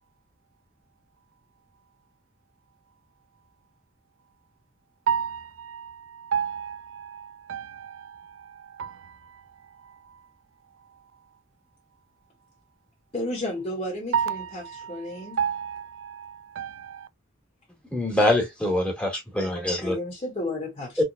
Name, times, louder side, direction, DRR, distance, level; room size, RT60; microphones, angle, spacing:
voice 1, 5.1-5.9 6.3-7.2 7.5-7.6 8.8-8.9 14.1-14.4 15.4-16.3 16.6-16.7, right 7 dB, 65° right, 0.5 m, -28 dB
voice 2, 13.1-15.4 19.8-21.0, left 1 dB, 30° left, 1.9 m, -32 dB
voice 3, 17.9-20.0 21.0-21.1, left 1 dB, 5° left, 2.2 m, -24 dB
4.2 x 3.9 x 2.3 m
head